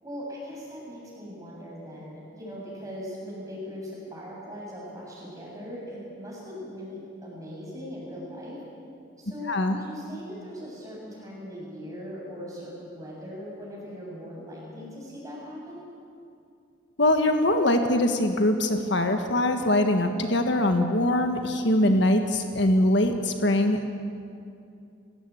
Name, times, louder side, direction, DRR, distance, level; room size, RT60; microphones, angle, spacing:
voice 1, 0.0-8.6 9.2-15.8, equal, 15° right, -4 dB, 7.8 m, -40 dB
voice 2, 17.0-23.9, left 1 dB, 60° left, 5 dB, 1.6 m, -22 dB
29.0 x 17.0 x 8.6 m, 2.5 s
head